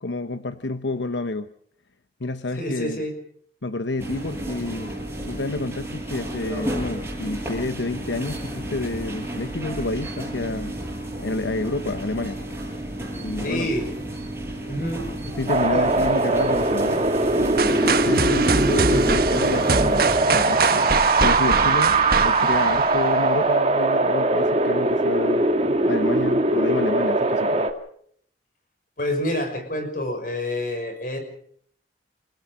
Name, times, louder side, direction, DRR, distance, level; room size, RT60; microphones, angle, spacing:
voice 1, 0.0-1.5 2.2-3.0 3.6-4.9 5.2-10.8 11.2-12.4 13.2-13.7 15.3-17.1 17.4-22.0 22.2-27.7, left 2 dB, 85° left, 10 dB, 1.0 m, -29 dB
voice 2, 2.6-3.2 13.4-13.9 14.7-15.0 15.7-15.9 19.3-19.4 29.0-31.2, left 1 dB, 50° left, 7 dB, 6.1 m, -28 dB
sound 1, 4.0-20.1, right 1 dB, 15° right, 7.7 m, -32 dB
Wind, 15.5-27.7, right 2 dB, 35° right, 2.3 m, -21 dB
sound 2, 17.6-23.5, right 4 dB, 55° right, 1.5 m, -24 dB
29.5 x 17.5 x 5.2 m, 0.63 s
head